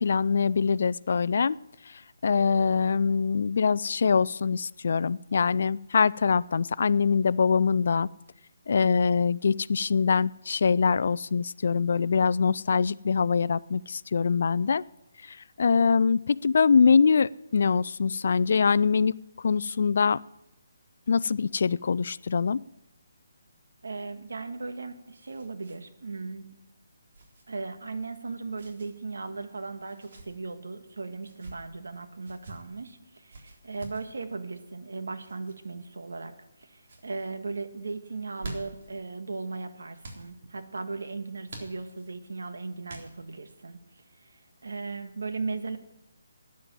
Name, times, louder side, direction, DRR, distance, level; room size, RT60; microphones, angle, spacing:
voice 1, 0.0-1.6 1.9-8.1 8.7-14.8 15.2-20.2 21.1-22.6, left 5 dB, 60° left, 20 dB, 0.4 m, -24 dB
voice 2, 23.8-26.5 27.5-36.3 36.6-45.8, right 3 dB, 80° right, 8 dB, 1.6 m, -37 dB
sound 1, 24.6-25.8 26.1-26.2 27.1-27.4 28.5-28.9 29.8-30.3 31.2-31.6 32.2-32.6 33.3-34.1 35.2-35.6 36.2-36.6 36.8-37.1 38.1-38.9 40.0-40.3 41.5-42.1 42.9-43.4, right 2 dB, 55° right, 3.5 m, -45 dB
12.5 x 9.6 x 7.6 m, 0.93 s
hypercardioid pair, 155°, 0 cm